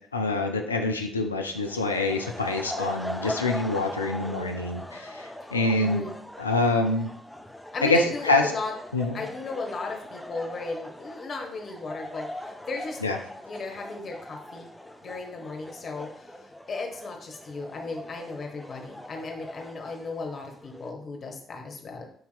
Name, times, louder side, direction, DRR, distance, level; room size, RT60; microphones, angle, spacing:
voice 1, 0.1-6.1 6.4-7.1 7.8-8.5 8.9-9.2 13.0-13.2, left 2 dB, 85° left, 4 dB, 0.3 m, -26 dB
sound 1, 1.5-20.9, left 1 dB, 5° left, 0.4 m, -40 dB
voice 2, 5.8-6.1 7.7-8.7 9.1-13.0 13.5-14.7 15.0-22.0, left 3 dB, 45° left, 2 dB, 0.9 m, -36 dB
7.7 x 2.8 x 2.2 m, 0.63 s
figure-of-eight pair, 45°, 0 cm